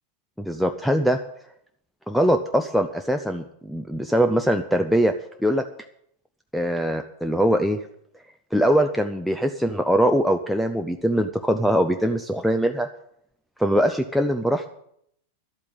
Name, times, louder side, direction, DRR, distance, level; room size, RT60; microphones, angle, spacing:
voice 1, 0.4-1.2 2.1-5.1 5.4-5.7 6.5-7.8 8.5-12.9 13.6-14.7, equal, ahead, 7 dB, 0.8 m, -22 dB
12.0 x 8.5 x 9.6 m, 0.70 s
figure-of-eight pair, 90°, 0 cm